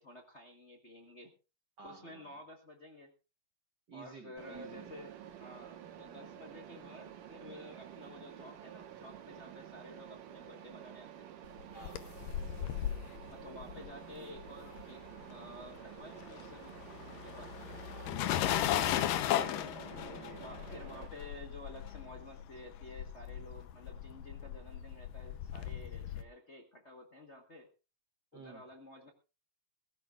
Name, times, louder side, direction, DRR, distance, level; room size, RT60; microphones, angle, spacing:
voice 1, 0.0-1.3 1.8-3.1 3.9-5.1 5.4-11.3 13.3-16.8 17.2-17.5 20.4-27.7 28.3-29.1, left 1 dB, 55° left, 2 dB, 0.7 m, -52 dB
voice 2, 1.8-2.3 3.9-4.9 11.7-12.3 17.5-20.5 28.3-28.6, right 5 dB, 60° right, 4 dB, 1.1 m, -54 dB
Mechanisms, 4.4-21.1, right 10 dB, 80° right, 2.9 m, -50 dB
sound 1, 11.6-15.2 15.5-26.2, left 12 dB, 85° left, 2.5 m, -37 dB
22.0 x 15.0 x 2.5 m, 0.31 s
omnidirectional pair, 3.8 m